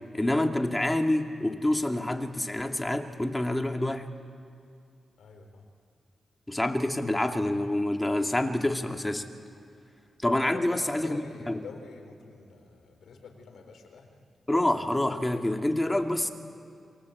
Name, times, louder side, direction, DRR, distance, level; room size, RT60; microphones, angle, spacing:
voice 1, 0.1-4.1 6.5-9.3 10.2-11.6 14.5-16.3, left 1 dB, 15° left, 5 dB, 2.3 m, -27 dB
voice 2, 5.2-5.6 10.5-14.2, left 5 dB, 80° left, 3 dB, 4.2 m, -47 dB
27.0 x 23.0 x 8.5 m, 2.3 s
cardioid pair, 60°, 0 cm